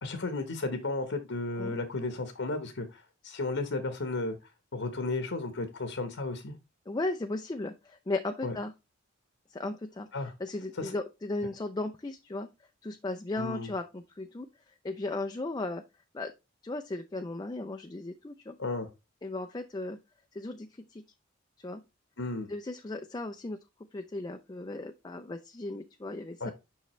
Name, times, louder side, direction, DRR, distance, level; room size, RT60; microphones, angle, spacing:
voice 1, 0.0-4.4 4.7-6.5 8.4-8.5 10.1-10.3 10.7-10.9 13.3-13.7 18.6-18.9 22.2-22.5 26.4-26.5, left 2 dB, 65° left, 8 dB, 1.0 m, -34 dB
voice 2, 6.9-8.7 9.5-10.1 10.4-12.5 12.8-14.5 14.8-15.8 16.1-16.3 16.6-18.6 19.2-20.0 20.3-21.0 21.6-21.8 22.5-23.6 23.9-26.5, left 2 dB, 20° left, 5 dB, 0.4 m, -36 dB
7.3 x 5.6 x 3.1 m, 0.25 s
head